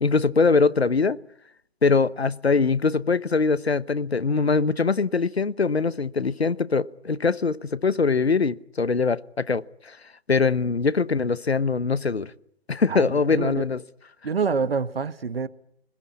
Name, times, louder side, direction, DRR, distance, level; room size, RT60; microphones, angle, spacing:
voice 1, 0.0-1.2 1.8-10.0 10.3-12.3 12.7-13.8, left 4 dB, 80° left, 1.0 m, -22 dB
voice 2, 12.9-13.6 14.2-15.5, right 5 dB, 65° right, 1.4 m, -27 dB
28.0 x 20.5 x 8.5 m
figure-of-eight pair, 130°, 31 cm